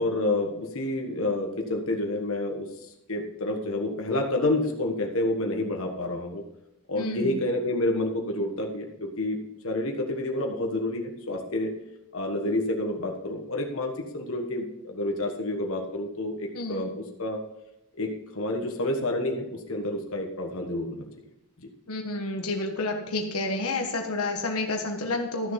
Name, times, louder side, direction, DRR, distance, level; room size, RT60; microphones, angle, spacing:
voice 1, 0.0-6.4 6.9-9.4 9.6-11.7 12.1-17.4 18.0-21.1 21.6-21.7, left 1 dB, 65° left, 2 dB, 1.5 m, -29 dB
voice 2, 6.9-7.3 16.5-16.9 21.9-25.5, left 2 dB, 85° left, 3 dB, 1.4 m, -30 dB
13.5 x 6.5 x 5.8 m, 0.87 s
head